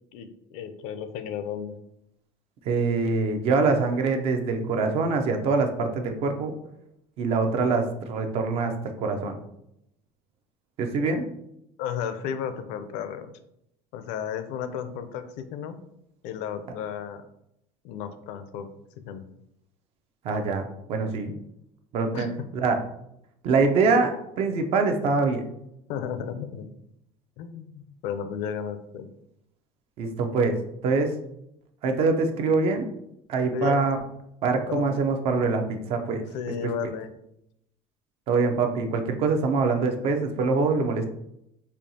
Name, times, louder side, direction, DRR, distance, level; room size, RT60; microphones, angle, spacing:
voice 1, 0.1-1.8 11.8-13.3 13.9-15.8 16.2-17.3 17.8-18.7 19.1-19.2 22.1-22.3 25.9-26.7 27.4-29.1 33.5-33.8 34.7-34.9 36.1-37.1, left 8 dB, 70° left, 10 dB, 0.4 m, -33 dB
voice 2, 2.7-6.5 7.2-8.7 9.0-9.4 10.8-11.2 20.2-21.3 21.9-22.3 22.6-22.8 23.4-25.4 30.0-30.6 30.8-31.1 31.8-32.9 33.3-34.0 34.4-36.2 38.3-41.1, right 4 dB, 50° right, 6 dB, 0.5 m, -24 dB
4.3 x 2.7 x 2.7 m, 0.79 s
cardioid pair, 150°, 13 cm